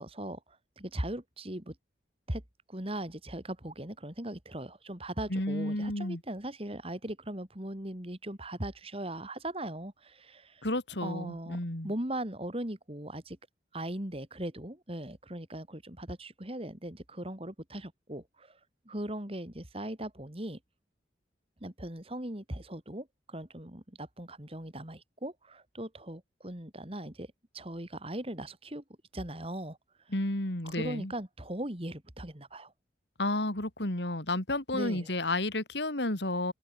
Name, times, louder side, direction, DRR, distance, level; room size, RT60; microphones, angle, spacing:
voice 1, 0.0-1.8 2.3-2.4 2.7-10.7 11.0-13.4 13.7-20.6 21.6-28.8 29.1-30.2 30.6-32.7 34.7-35.1, right 1 dB, 30° right, 2.9 m, -39 dB
voice 2, 5.3-6.2 10.6-11.9 30.1-31.1 33.2-36.5, left 1 dB, 70° left, 3.6 m, -31 dB
head